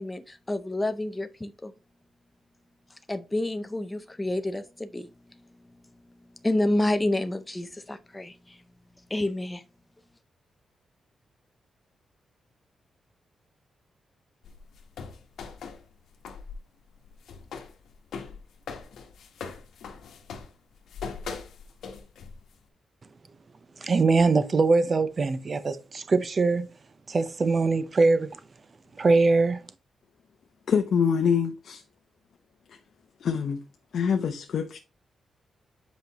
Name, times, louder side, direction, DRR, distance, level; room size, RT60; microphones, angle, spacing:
voice 1, 0.0-1.7 3.1-5.1 6.4-8.6 9.1-9.6, left 1 dB, 15° left, 0.6 m, -29 dB
sound 1, 14.4-16.6 16.9-22.6, left 5 dB, 85° left, 1.2 m, -41 dB
voice 2, 23.8-26.7 27.1-28.4 28.9-29.6, right 3 dB, 35° right, 0.7 m, -22 dB
voice 3, 30.7-31.8 32.7-32.8 33.2-33.6 33.9-34.8, left 7 dB, 65° left, 0.7 m, -25 dB
8.0 x 5.1 x 3.0 m
cardioid pair, 120°, 0 cm